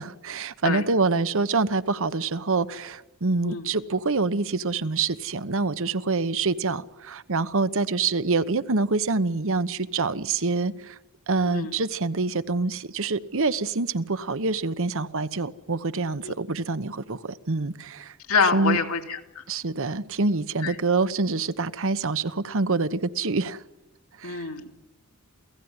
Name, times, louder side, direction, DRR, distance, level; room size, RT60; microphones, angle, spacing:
voice 1, 0.0-11.0 11.3-18.2 18.5-18.8 19.5-23.6 24.2-24.5, right 3 dB, 65° right, 1.0 m, -26 dB
voice 2, 18.3-19.4 20.6-20.7 24.2-24.8, left 5 dB, 75° left, 2.7 m, -26 dB
28.5 x 17.5 x 9.7 m
head